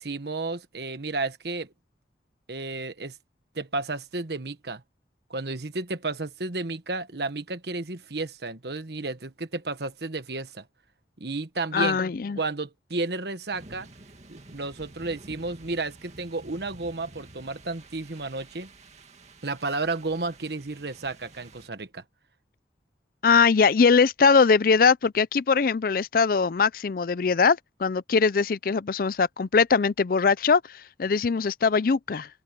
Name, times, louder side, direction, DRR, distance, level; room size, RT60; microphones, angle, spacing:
voice 1, 0.0-1.7 2.5-3.1 3.5-4.8 5.3-10.6 11.2-12.0 12.4-13.9 14.3-18.7 19.4-22.0, right 3 dB, 65° right, 1.4 m, -32 dB
voice 2, 11.7-12.4 23.2-30.6 31.0-32.3, left 5 dB, 55° left, 0.4 m, -21 dB
sound 1, 13.5-21.7, right 2 dB, 40° right, 2.3 m, -50 dB
open air
head